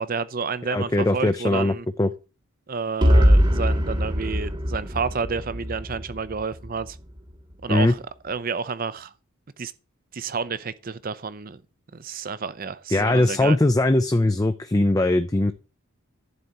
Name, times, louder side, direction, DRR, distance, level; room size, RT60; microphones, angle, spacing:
voice 1, 0.0-1.9 2.7-7.0 7.6-9.1 9.6-9.7 10.1-11.6 11.9-13.6, right 5 dB, 40° right, 0.6 m, -30 dB
voice 2, 0.7-1.7 2.0-2.1 7.7-7.9 12.9-15.5, left 2 dB, 15° left, 0.4 m, -20 dB
sound 1, 3.0-6.9, equal, 20° right, 1.1 m, -21 dB
11.0 x 4.2 x 8.0 m
head